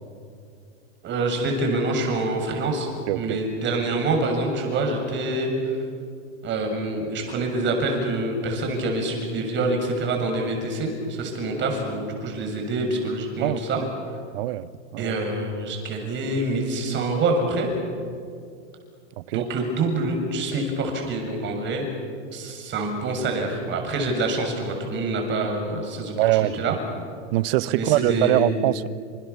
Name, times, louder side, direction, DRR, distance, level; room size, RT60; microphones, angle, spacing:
voice 1, 1.0-2.9 3.1-5.8 6.4-13.8 15.0-17.7 19.3-21.9 22.3-26.8 27.7-28.6, right 2 dB, 30° right, 3 dB, 7.3 m, -26 dB
voice 2, 3.1-3.4 13.4-13.9 14.3-15.2 19.2-19.5 26.2-26.8 27.3-28.9, right 16 dB, 50° right, 17 dB, 1.0 m, -23 dB
29.0 x 27.5 x 7.2 m, 2.3 s
hypercardioid pair, 135°, 36 cm